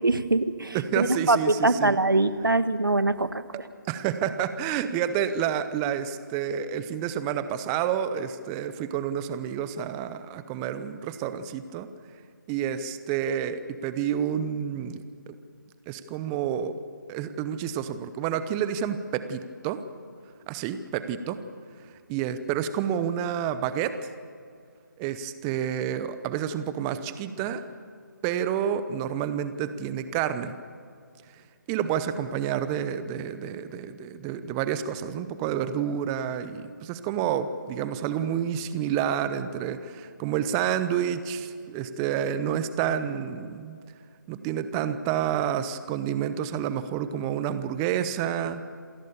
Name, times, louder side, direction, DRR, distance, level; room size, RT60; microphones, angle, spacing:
voice 1, 0.0-3.4, right 2 dB, 85° right, 13 dB, 1.4 m, -23 dB
voice 2, 0.7-2.0 3.9-11.9 12.5-15.3 15.9-16.7 17.1-19.8 20.5-21.4 22.1-24.0 25.0-27.6 28.2-30.6 31.7-43.8 44.3-48.6, right 9 dB, 15° right, 12 dB, 0.8 m, -29 dB
27.5 x 16.0 x 7.0 m, 2.2 s
figure-of-eight pair, 155°, 11 cm